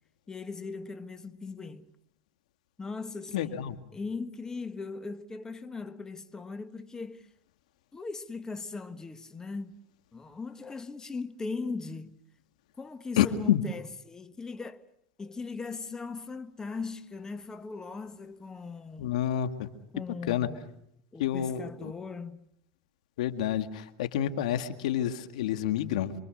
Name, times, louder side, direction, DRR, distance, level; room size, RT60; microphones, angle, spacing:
voice 1, 0.3-1.9 2.8-3.7 3.9-7.3 7.9-9.8 10.1-12.1 12.8-14.8 15.2-19.2 19.9-20.7 21.1-22.4, left 4 dB, 15° left, 1.4 m, -39 dB
voice 2, 3.3-3.8 13.2-13.6 19.0-19.7 20.0-20.5 21.2-21.9 23.2-26.1, left 11 dB, 80° left, 2.1 m, -29 dB
27.5 x 23.5 x 6.5 m
supercardioid pair, 105°, 4 cm